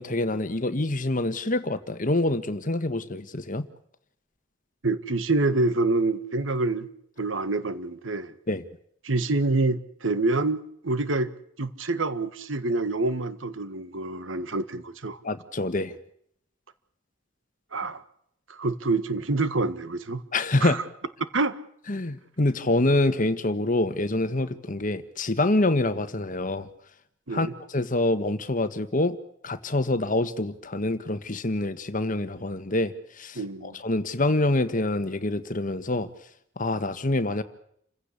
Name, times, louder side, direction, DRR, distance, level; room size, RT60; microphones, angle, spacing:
voice 1, 0.0-3.7 8.5-8.6 15.2-16.0 20.3-20.8 21.9-26.7 27.3-29.2 29.4-36.1 36.6-37.4, left 2 dB, 45° left, 1.5 m, -26 dB
voice 2, 4.8-6.9 7.2-8.3 9.0-11.3 11.6-15.2 17.7-18.0 18.5-20.2 20.6-20.8 21.3-21.5 27.3-27.5 33.3-33.7, right 2 dB, 80° right, 1.7 m, -26 dB
28.5 x 16.0 x 8.5 m
head